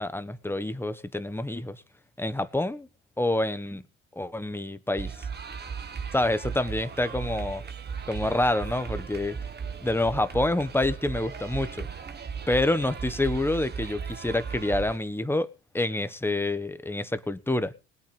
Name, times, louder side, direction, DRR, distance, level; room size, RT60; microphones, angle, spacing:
voice 1, 0.0-1.8 2.2-2.9 3.2-3.8 4.1-5.1 6.1-7.6 8.1-9.4 9.8-11.9 12.5-15.5 15.7-17.7, left 2 dB, 5° left, 1.2 m, -27 dB
sound 1, 5.0-15.0, right 6 dB, 30° right, 1.5 m, -36 dB
19.5 x 8.7 x 5.5 m
supercardioid pair, 85°, 33 cm